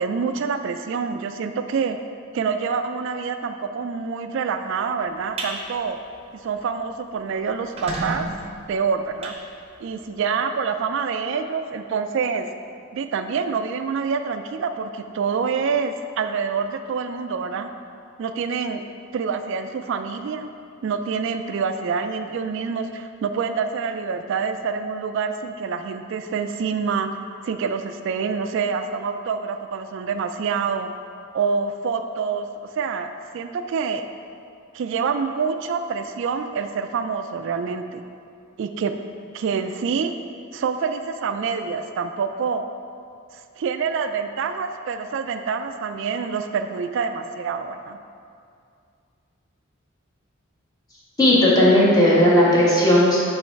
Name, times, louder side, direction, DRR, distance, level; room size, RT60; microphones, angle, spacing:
voice 1, 0.0-2.0 2.3-6.0 6.4-8.3 8.7-9.3 9.8-12.5 12.9-17.7 18.2-18.8 19.1-20.5 20.8-27.1 27.4-30.9 31.3-32.5 32.8-34.0 34.7-38.0 38.6-38.9 39.3-40.1 40.5-42.6 43.3-48.0, right 5 dB, 65° right, 8 dB, 0.3 m, -26 dB
sound 1, 5.1-5.5 6.0-6.2 6.6-6.7 6.9-7.0 7.5-10.1, right 2 dB, 30° right, 0.7 m, -33 dB
voice 2, 51.2-53.2, left 1 dB, 20° left, -6 dB, 1.3 m, -15 dB
8.4 x 3.2 x 4.5 m, 2.3 s
head